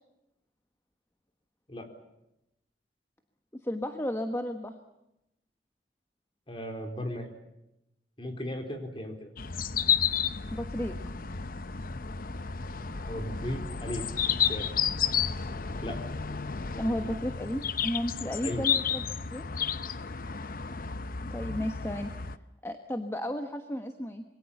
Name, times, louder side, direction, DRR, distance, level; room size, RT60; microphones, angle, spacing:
voice 1, 3.6-4.7 10.5-11.0 16.8-19.0 19.3-19.4 21.3-22.1 22.6-24.2, equal, 15° left, 6 dB, 1.3 m, -33 dB
voice 2, 6.5-7.3 8.2-9.3 13.0-14.6 15.8-16.0 18.4-18.7, equal, 30° left, 5 dB, 3.8 m, -36 dB
sound 1, 9.4-22.4, left 7 dB, 55° left, 0.8 m, -32 dB
26.5 x 22.5 x 7.2 m, 0.88 s
head